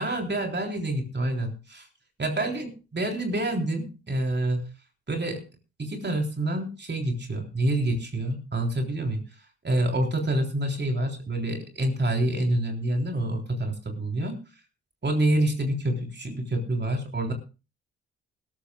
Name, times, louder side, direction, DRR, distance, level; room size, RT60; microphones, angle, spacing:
voice 1, 0.0-1.9 2.2-4.7 5.1-5.4 5.8-9.2 9.6-14.4 15.0-17.3, right 1 dB, 30° right, 3 dB, 3.7 m, -27 dB
20.5 x 13.5 x 2.3 m, 0.31 s
hypercardioid pair, 45°, 33 cm